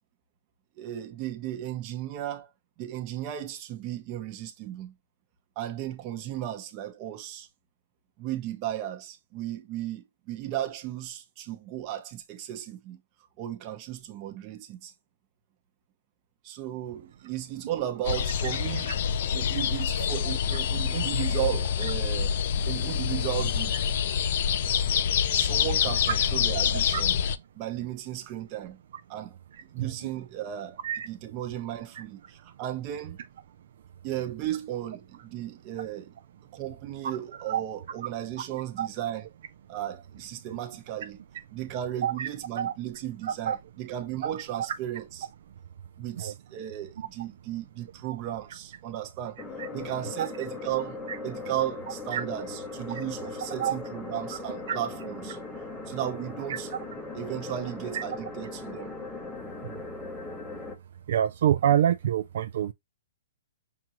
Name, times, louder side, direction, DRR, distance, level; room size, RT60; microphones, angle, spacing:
voice 1, 0.8-2.5 2.8-4.9 5.6-7.5 8.2-13.0 13.4-14.9 16.4-22.3 22.7-23.8 25.3-27.1 27.5-28.8 29.1-29.4 29.7-30.8 31.0-33.2 34.0-36.2 36.5-39.3 39.7-41.2 41.5-45.1 46.0-49.4 49.7-55.4 55.9-56.7 57.1-58.9, right 12 dB, 30° right, 0.8 m, -35 dB
sound 1, 18.0-27.4, left 8 dB, 50° left, 0.3 m, -26 dB
voice 2, 43.2-43.6 44.2-44.3 46.2-46.3 47.0-47.1 49.6-49.7 50.2-50.3 51.1-51.2 52.1-52.2 53.6-53.8 54.7-54.8 57.9-58.0 59.7-59.8 61.1-62.7, right 10 dB, 55° right, 0.3 m, -26 dB
sound 2, 49.4-60.8, left 3 dB, 5° left, 0.7 m, -39 dB
5.8 x 2.5 x 3.0 m
hypercardioid pair, 160°, 0 cm